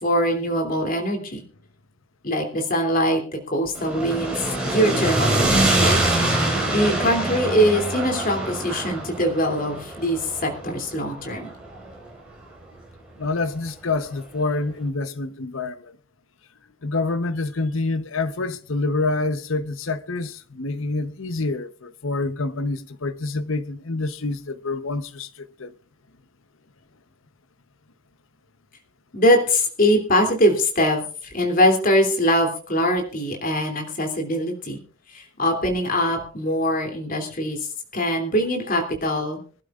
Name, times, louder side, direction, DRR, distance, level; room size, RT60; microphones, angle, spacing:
voice 1, 0.0-1.4 2.2-6.0 6.7-11.5 29.1-31.0 31.3-34.8 35.1-37.6 37.9-39.4, equal, 45° left, 3.0 m, -22 dB
sound 1, 3.8-12.0, right 2 dB, 5° right, 5.2 m, -24 dB
voice 2, 13.2-15.9 16.8-25.7, left 3 dB, 75° left, 0.9 m, -27 dB
24.5 x 12.5 x 2.5 m
head